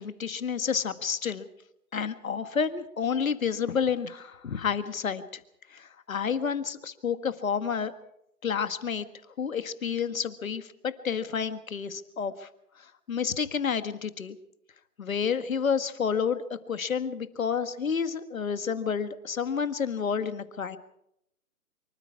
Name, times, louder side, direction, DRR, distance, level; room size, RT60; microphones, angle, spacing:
voice 1, 0.0-1.5 1.9-5.4 5.7-7.9 8.4-9.0 9.4-12.5 13.1-14.3 15.0-20.8, left 6 dB, 60° left, 11 dB, 1.8 m, -30 dB
25.0 x 23.5 x 4.8 m, 0.78 s
figure-of-eight pair, 150°, 46 cm